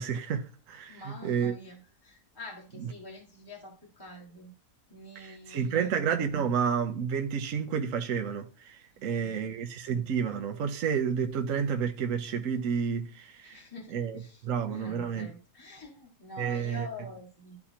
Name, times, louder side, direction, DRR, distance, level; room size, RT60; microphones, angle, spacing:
voice 1, 0.0-1.6 2.8-2.9 5.2-13.6 13.9-15.3 16.4-16.9, right 7 dB, 60° right, 1.1 m, -30 dB
voice 2, 0.9-4.5 4.9-6.0 8.9-9.6 13.4-14.4 14.7-17.6, left 1 dB, 15° left, 1.7 m, -46 dB
12.5 x 4.2 x 2.9 m
omnidirectional pair, 1.7 m